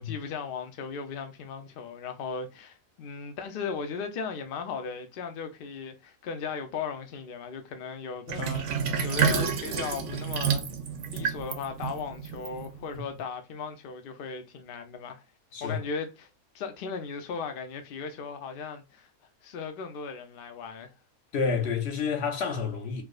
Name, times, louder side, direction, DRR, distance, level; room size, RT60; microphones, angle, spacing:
voice 1, 0.0-10.6 11.1-15.2 15.6-16.3 16.5-19.1 19.4-20.9, left 5 dB, 80° left, 0.5 m, -37 dB
Sink (filling or washing), 8.3-13.0, right 7 dB, 65° right, 0.8 m, -29 dB
voice 2, 21.3-23.0, left 5 dB, 55° left, 0.9 m, -29 dB
4.6 x 2.0 x 2.3 m
omnidirectional pair, 1.6 m